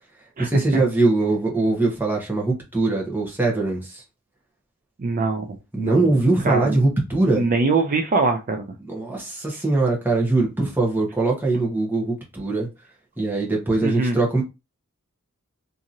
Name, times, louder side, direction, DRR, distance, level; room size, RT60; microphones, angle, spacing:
voice 1, 0.4-4.0 5.7-7.4 8.8-12.7 13.2-14.4, right 2 dB, 10° right, 0.9 m, -22 dB
voice 2, 5.0-6.1 6.4-6.8 7.3-8.7 13.8-14.2, right 3 dB, 40° right, 0.4 m, -23 dB
2.8 x 2.6 x 2.5 m
head